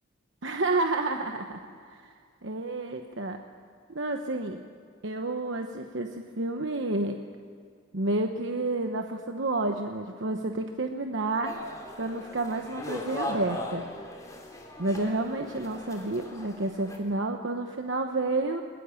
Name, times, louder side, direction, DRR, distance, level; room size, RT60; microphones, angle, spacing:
voice 1, 0.4-2.1 2.4-3.4 3.9-4.6 5.0-7.2 7.9-11.6 12.0-13.9 14.8-18.6, right 2 dB, 65° right, 4 dB, 1.1 m, -30 dB
sound 1, 11.4-17.0, left 1 dB, 15° left, 2.8 m, -38 dB
20.5 x 20.5 x 7.2 m, 2.2 s
head